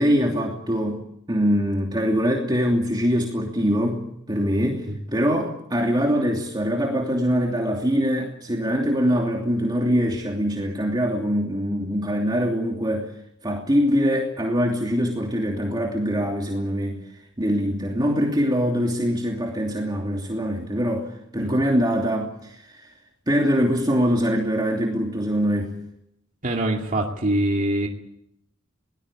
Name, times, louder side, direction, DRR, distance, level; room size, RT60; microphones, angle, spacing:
voice 1, 0.0-13.1 13.4-17.0 17.4-22.9 23.3-25.7, equal, 20° right, 0 dB, 2.9 m, -23 dB
voice 2, 26.4-27.9, right 1 dB, 40° right, 0 dB, 2.5 m, -24 dB
22.5 x 19.0 x 8.7 m, 0.76 s
head